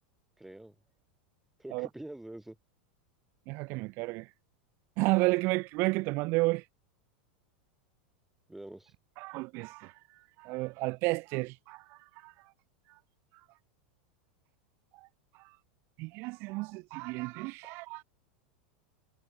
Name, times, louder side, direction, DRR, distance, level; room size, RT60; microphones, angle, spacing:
voice 1, 0.4-0.8 1.6-2.6 8.5-8.9, right 1 dB, 5° right, 2.2 m, -45 dB
voice 2, 3.5-4.3 5.0-6.6 9.2-12.5 12.9-13.0 14.9-15.1 15.3-15.6 16.0-18.0, right 25 dB, 50° right, 0.4 m, -32 dB
hypercardioid pair, 90°, 5 cm